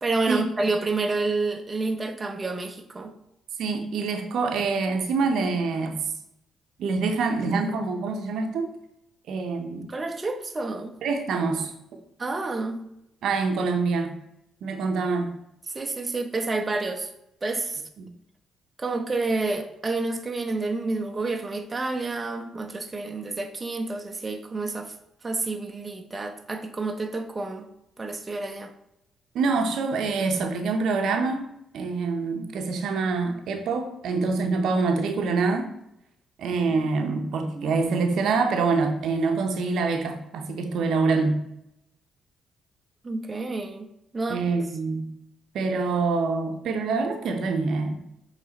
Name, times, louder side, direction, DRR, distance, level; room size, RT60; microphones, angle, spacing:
voice 1, 0.0-3.1 9.9-10.9 12.2-12.8 15.7-17.1 17.4-17.8 18.8-24.9 25.2-27.7 28.0-28.7 37.5-37.8 43.0-43.9 44.1-44.5, right 3 dB, 25° right, 5 dB, 0.7 m, -29 dB
voice 2, 3.6-6.0 6.8-8.7 9.3-9.9 11.0-11.7 13.2-14.1 14.6-15.3 18.0-18.1 29.3-31.5 31.7-35.7 36.4-41.4 44.3-45.1 45.5-48.0, right 4 dB, 75° right, 5 dB, 0.7 m, -25 dB
7.5 x 3.3 x 4.0 m, 0.82 s
cardioid pair, 90°, 0 cm